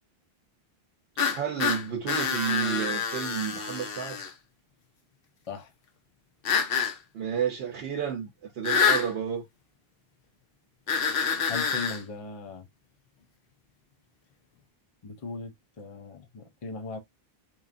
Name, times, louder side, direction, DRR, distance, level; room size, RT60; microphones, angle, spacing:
sound 1, 1.2-4.3 6.4-6.9 8.6-9.1 10.9-12.0, left 6 dB, 65° left, 0.8 m, -27 dB
voice 1, 1.2-4.2 7.1-9.4, right 8 dB, 75° right, 0.8 m, -31 dB
voice 2, 11.5-12.7 15.0-17.0, left 4 dB, 40° left, 0.6 m, -38 dB
3.1 x 2.3 x 2.4 m
omnidirectional pair, 1.0 m